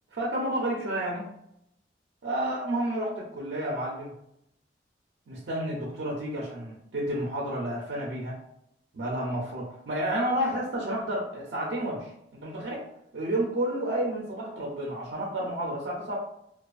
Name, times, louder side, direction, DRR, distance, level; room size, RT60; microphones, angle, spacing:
voice 1, 0.1-1.3 2.2-4.1 5.3-8.4 8.9-12.1 12.4-12.8 13.1-16.2, right 1 dB, 80° right, -4 dB, 0.5 m, -30 dB
2.4 x 2.3 x 2.4 m, 0.78 s
head